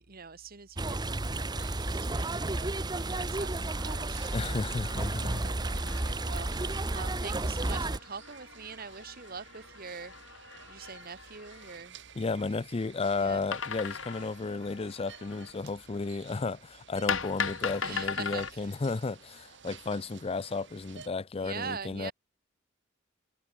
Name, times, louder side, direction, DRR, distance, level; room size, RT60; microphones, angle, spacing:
voice 1, 0.0-4.6 5.1-11.9 13.2-13.4 17.8-18.8 21.4-22.1, right 5 dB, 50° right, 1.9 m, -44 dB
sound 1, 0.8-8.0, right 2 dB, 20° right, 0.9 m, -32 dB
sound 2, 1.6-21.1, right 7 dB, 65° right, 3.3 m, -54 dB
sound 3, 3.7-11.8 13.5-15.6 17.1-18.5, left 6 dB, 85° left, 2.8 m, -39 dB
voice 2, 4.3-5.4 12.2-22.1, left 3 dB, 30° left, 0.5 m, -33 dB
head